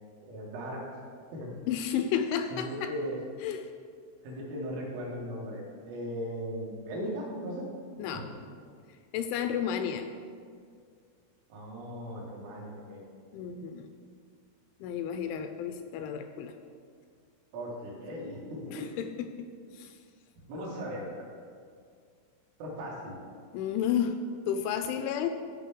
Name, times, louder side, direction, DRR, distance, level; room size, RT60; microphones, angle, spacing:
voice 1, 0.2-0.8 1.3-1.5 2.5-3.2 4.2-7.7 8.1-8.3 11.5-13.1 17.5-18.9 20.5-21.3 22.6-23.2, equal, 80° right, -4 dB, 4.5 m, -38 dB
voice 2, 1.7-2.9 3.4-3.7 8.0-8.3 9.1-10.1 13.3-13.9 14.8-16.6 18.7-19.5 19.7-20.0 23.5-24.2 24.5-25.3, left 8 dB, 85° left, 7 dB, 2.7 m, -32 dB
15.0 x 5.7 x 3.7 m, 2.1 s
omnidirectional pair, 5.6 m